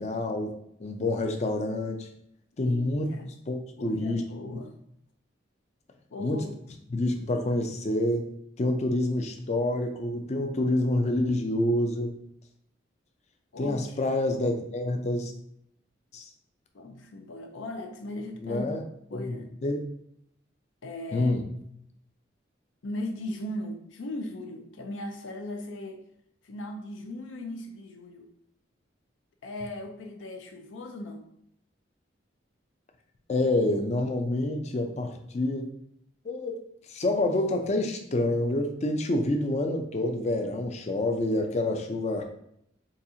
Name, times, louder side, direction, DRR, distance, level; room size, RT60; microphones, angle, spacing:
voice 1, 0.0-2.1 2.6-3.1 3.5-4.2 4.5-4.6 6.2-6.4 6.9-8.3 8.6-12.2 13.6-15.3 16.1-16.3 18.4-18.8 19.1-19.8 21.1-21.4 33.3-35.7 36.2-36.6 36.9-42.2, left 1 dB, 35° left, 4 dB, 0.4 m, -27 dB
voice 2, 2.6-3.3 3.8-4.7 6.1-6.6 13.5-14.0 16.7-18.7 19.1-19.5 20.8-21.3 22.8-26.0 26.4-28.3 29.4-31.3, left 1 dB, 85° left, 4 dB, 0.5 m, -38 dB
4.0 x 2.4 x 2.7 m, 0.73 s
head